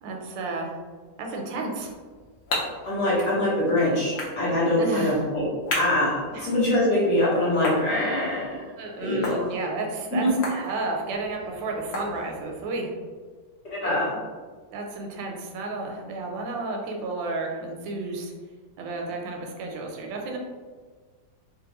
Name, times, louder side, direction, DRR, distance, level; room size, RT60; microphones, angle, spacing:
voice 1, 0.0-0.8 1.2-1.9 4.8-5.2 6.3-6.5 8.8-12.9 13.8-14.1 14.7-18.3 18.8-20.4, right 3 dB, 85° right, 1 dB, 1.3 m, -32 dB
sound 1, 1.8-12.7, left 2 dB, 85° left, 0.5 m, -37 dB
voice 2, 2.8-5.4 5.7-8.5 9.0-9.5 10.1-10.3 13.7-14.1, left 1 dB, 50° left, -7 dB, 1.2 m, -23 dB
3.2 x 2.4 x 2.9 m, 1.5 s
omnidirectional pair, 2.0 m